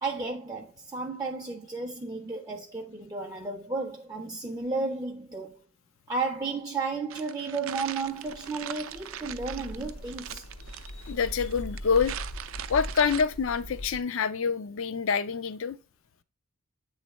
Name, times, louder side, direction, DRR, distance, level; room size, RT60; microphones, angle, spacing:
voice 1, 0.0-5.6 6.1-10.4, right 3 dB, 15° right, 0.5 m, -33 dB
sound 1, 7.1-13.2, right 10 dB, 70° right, 0.4 m, -41 dB
sound 2, 7.7-14.0, equal, 85° left, 0.9 m, -41 dB
voice 2, 11.0-12.1 12.7-15.8, left 6 dB, 65° left, 0.4 m, -26 dB
8.2 x 3.3 x 4.1 m
head